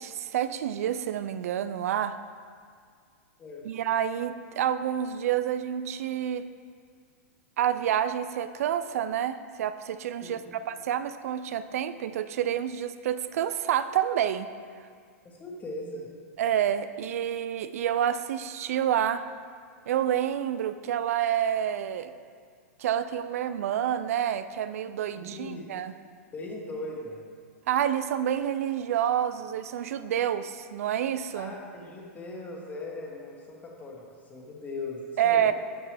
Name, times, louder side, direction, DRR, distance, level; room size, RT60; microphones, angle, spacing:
voice 1, 0.0-2.2 3.6-6.5 7.6-10.4 10.7-14.5 16.4-19.2 19.9-22.1 22.8-25.9 27.7-31.5 35.2-35.5, right 10 dB, 75° right, 12 dB, 0.4 m, -28 dB
voice 2, 10.2-10.6 15.2-16.1 25.1-25.7 26.3-27.2 31.4-35.5, left 2 dB, 20° left, -2 dB, 1.5 m, -39 dB
9.3 x 5.8 x 3.4 m, 2.1 s
hypercardioid pair, 120°, 8 cm